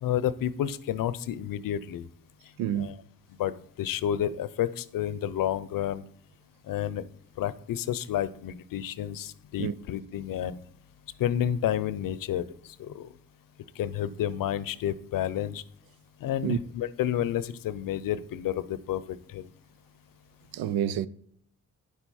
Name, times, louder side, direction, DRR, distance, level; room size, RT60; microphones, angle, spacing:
voice 1, 0.0-2.1 2.8-3.0 3.4-6.0 6.6-7.1 7.4-10.6 11.2-13.1 13.8-15.6 16.2-19.5, left 10 dB, 70° left, 0.7 m, -30 dB
voice 2, 2.6-2.9 9.6-9.7 16.4-16.6 20.5-21.1, right 10 dB, 85° right, 0.6 m, -28 dB
9.6 x 7.3 x 4.2 m
supercardioid pair, 55°, 34 cm